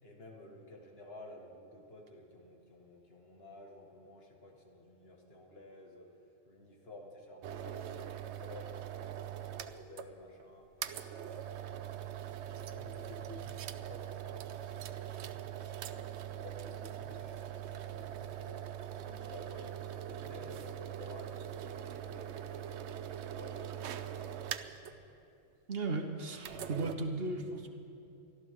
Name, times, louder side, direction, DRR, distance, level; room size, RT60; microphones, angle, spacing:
voice 1, 0.0-6.1 6.5-10.7 11.2-15.4 15.8-18.6 19.0-22.7 23.2-25.0, left 2 dB, 65° left, 0 dB, 2.0 m, -53 dB
sound 1, 7.4-10.1 10.4-10.5 10.8-24.9 26.4-27.0, right 10 dB, 85° right, 0.9 m, -42 dB
voice 2, 25.7-27.7, right 3 dB, 60° right, 5 dB, 1.3 m, -36 dB
23.5 x 14.0 x 3.7 m, 2.8 s
omnidirectional pair, 1.1 m